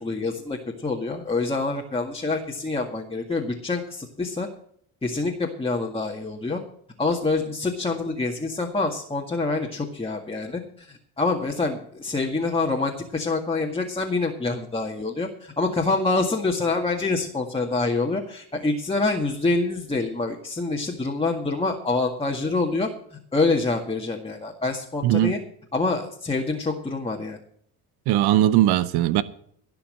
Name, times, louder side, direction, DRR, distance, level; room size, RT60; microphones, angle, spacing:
voice 1, 0.0-4.5 5.0-6.6 7.0-25.4 25.7-27.4, left 3 dB, 15° left, 1.9 m, -26 dB
voice 2, 25.0-25.3 28.1-29.2, right 13 dB, 80° right, 0.9 m, -19 dB
17.5 x 5.9 x 7.6 m
cardioid pair, 100°, 38 cm